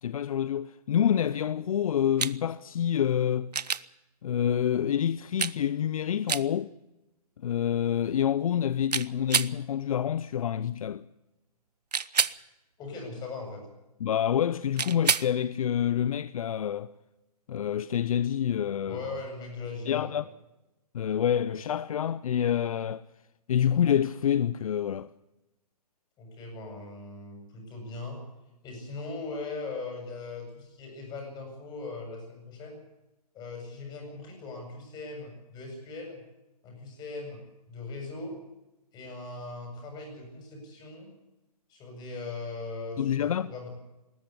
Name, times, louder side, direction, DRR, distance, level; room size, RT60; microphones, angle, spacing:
voice 1, 0.0-3.5 4.2-6.7 7.4-11.0 14.0-16.9 17.5-19.0 19.9-20.3 20.9-23.0 23.5-25.1 43.0-43.5, left 9 dB, 60° left, 0.6 m, -27 dB
sound 1, 2.2-2.4 3.5-3.9 5.4-5.6 6.3-6.5 8.9-9.5 11.9-12.4 14.8-15.3 17.6-17.7, right 6 dB, 90° right, 0.8 m, -27 dB
voice 2, 12.8-13.7 18.9-20.2 26.2-28.2 28.6-32.8 33.3-36.2 36.6-38.4 38.9-41.1 41.7-43.7, left 3 dB, 20° left, 7.7 m, -39 dB
20.0 x 13.5 x 9.6 m
hypercardioid pair, 140°, 20 cm